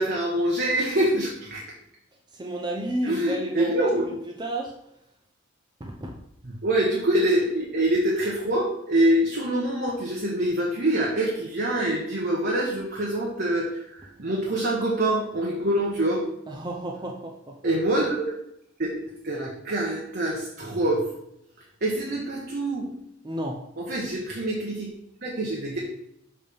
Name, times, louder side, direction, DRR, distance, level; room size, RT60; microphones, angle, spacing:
voice 1, 0.0-1.6 3.0-4.0 6.4-16.2 17.6-18.1 18.8-21.0 21.8-22.9 23.8-24.9 25.2-25.8, right 1 dB, 55° right, -3 dB, 1.2 m, -25 dB
voice 2, 2.3-4.7 5.8-6.2 16.5-17.6 23.2-23.6, right 1 dB, 20° right, 0 dB, 0.6 m, -32 dB
6.6 x 3.6 x 5.2 m, 0.78 s
head